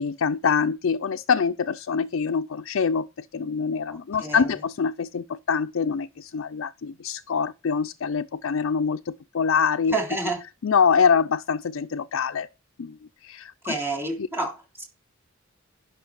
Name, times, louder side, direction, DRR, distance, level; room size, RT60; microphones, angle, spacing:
voice 1, 0.0-10.0 10.6-12.5 12.8-13.7 14.2-14.3, left 6 dB, 75° left, 0.5 m, -25 dB
voice 2, 3.9-4.6 9.9-10.4 13.6-14.8, right 2 dB, 10° right, 3.1 m, -29 dB
11.5 x 5.9 x 6.3 m
head